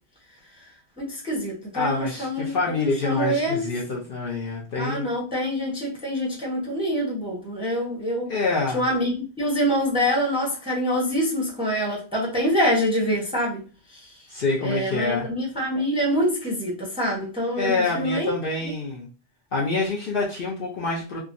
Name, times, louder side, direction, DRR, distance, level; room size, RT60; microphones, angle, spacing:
voice 1, 1.0-2.5 3.0-3.7 4.8-8.3 8.7-13.6 13.9-14.1 14.6-18.3, equal, 5° right, 0.7 m, -25 dB
voice 2, 1.7-5.1 8.3-8.8 14.3-15.3 17.6-19.1 19.5-21.2, left 3 dB, 55° left, 0.7 m, -26 dB
3.5 x 2.0 x 2.5 m
omnidirectional pair, 1.3 m